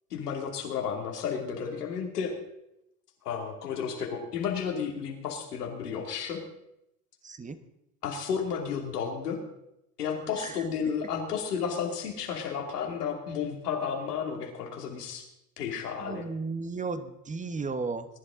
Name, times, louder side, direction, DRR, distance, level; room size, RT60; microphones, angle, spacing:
voice 1, 0.1-2.3 3.2-6.4 8.0-9.4 10.0-15.3 15.6-16.2, left 7 dB, 80° left, 2 dB, 2.7 m, -32 dB
voice 2, 7.2-7.6 10.4-10.6 16.0-18.1, right 4 dB, 15° right, 11 dB, 1.1 m, -34 dB
21.5 x 11.0 x 3.8 m, 0.84 s
hypercardioid pair, 80°, 46 cm